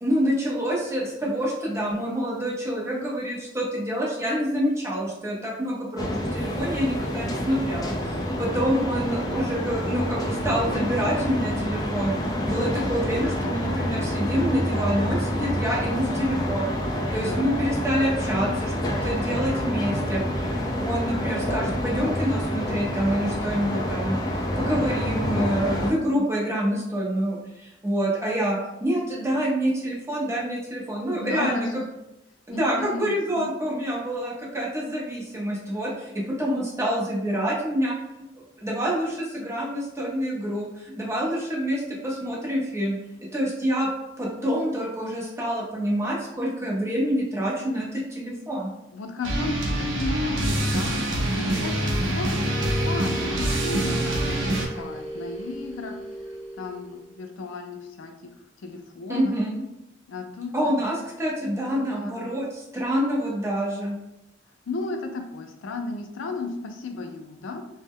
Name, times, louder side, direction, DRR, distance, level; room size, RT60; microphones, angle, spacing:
voice 1, 0.0-12.1 12.5-16.7 17.1-31.7 32.5-38.0 38.6-43.0 43.3-43.9 44.2-48.7 59.1-59.6 60.5-63.9, equal, 15° right, -4 dB, 0.7 m, -27 dB
sound 1, 6.0-25.9, equal, 20° left, 0.3 m, -27 dB
voice 2, 31.2-31.8 32.5-33.5 48.9-55.9 56.6-58.3 58.6-59.3 60.1-60.7 61.5-62.3 64.7-67.6, left 3 dB, 85° left, 4 dB, 0.4 m, -34 dB
sound 2, 49.2-54.7, right 1 dB, 70° right, 0.5 m, -25 dB
sound 3, 52.3-57.2, right 1 dB, 40° right, 1.0 m, -35 dB
2.1 x 2.0 x 3.5 m, 0.86 s
head